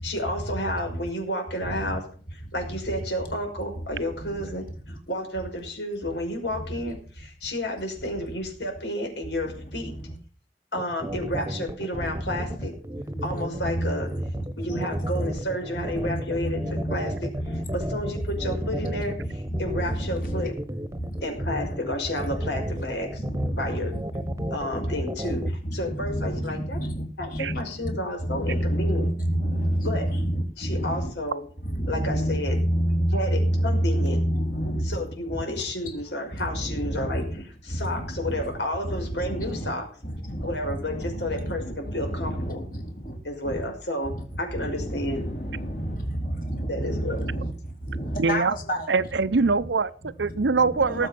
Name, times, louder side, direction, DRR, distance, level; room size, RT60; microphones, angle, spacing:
voice 1, 0.0-2.0 2.3-9.9 10.7-12.7 13.2-14.1 14.6-16.6 16.9-17.3 17.7-20.6 21.2-23.9 24.5-25.5 25.7-26.8 27.2-29.1 29.8-30.1 30.6-31.4 31.9-32.6 33.1-34.2 34.8-37.3 37.6-39.9 40.4-42.6 43.2-45.3 46.7-47.2, left 1 dB, 85° left, 5.9 m, -31 dB
sound 1, 10.8-25.5, right 1 dB, 15° right, 1.2 m, -34 dB
voice 2, 13.1-13.9 14.7-15.4 15.9-17.0 17.4-17.6 18.1-18.2 18.7-18.9 19.2-20.5 22.4-22.5 23.2-24.0 24.4-25.0 25.3-27.0 27.3-28.0 28.3-31.1 31.6-34.9 36.5-37.4 37.8-38.4 38.8-39.7 40.0-42.8 43.4-43.6 44.1-44.2 44.6-47.5 47.8-48.8 50.6-51.1, equal, 50° left, 4.1 m, -29 dB
voice 3, 48.2-48.5 48.9-51.1, right 4 dB, 90° right, 0.7 m, -23 dB
18.5 x 7.7 x 6.0 m
head